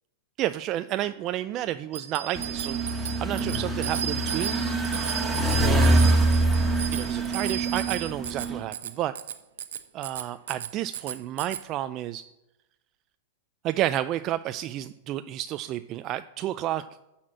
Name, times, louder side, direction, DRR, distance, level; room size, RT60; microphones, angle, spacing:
voice 1, 0.4-4.6 5.5-6.0 6.9-9.1 9.9-12.2 13.6-16.8, right 13 dB, 35° right, 11 dB, 0.3 m, -31 dB
Bicycle bell, 1.9-11.6, right 9 dB, 85° right, 0.8 m, -35 dB
sound 1, 2.3-8.6, right 2 dB, 5° right, 1.7 m, -25 dB
12.0 x 4.3 x 7.6 m, 0.91 s
supercardioid pair, 140°, 0 cm